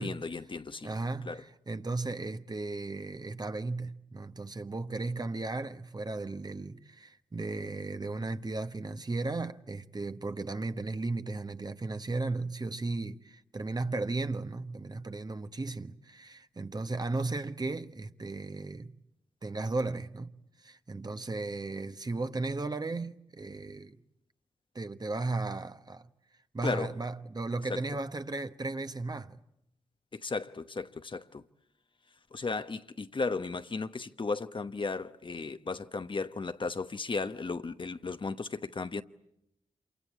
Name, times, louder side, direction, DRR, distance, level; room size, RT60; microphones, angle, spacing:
voice 1, 0.0-0.9 1.3-1.4 26.6-26.9 27.7-27.8 30.1-31.4 32.3-39.0, left 4 dB, 40° left, 1.0 m, -35 dB
voice 2, 0.8-18.9 19.4-20.3 20.6-24.0 24.7-26.1 26.5-29.4, right 3 dB, 35° right, 1.2 m, -35 dB
26.5 x 24.0 x 8.7 m
cardioid pair, 50°, 12 cm